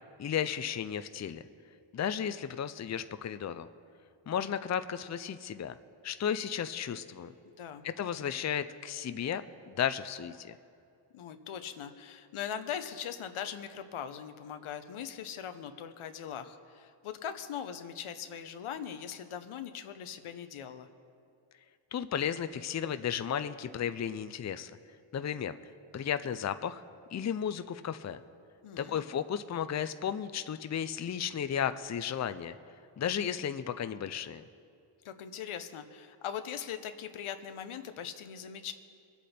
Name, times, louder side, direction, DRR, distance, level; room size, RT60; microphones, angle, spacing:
voice 1, 0.2-1.4 1.9-3.7 4.3-5.7 6.0-7.3 7.8-10.5 21.9-24.7 25.1-25.6 25.9-26.8 27.1-28.2 28.8-32.6 33.0-34.4, left 8 dB, 35° left, 11 dB, 0.5 m, -34 dB
voice 2, 7.5-7.9 11.1-20.9 28.6-29.1 35.0-38.7, left 8 dB, 85° left, 8 dB, 0.9 m, -40 dB
22.5 x 8.3 x 4.3 m, 2.5 s
cardioid pair, 75°, 48 cm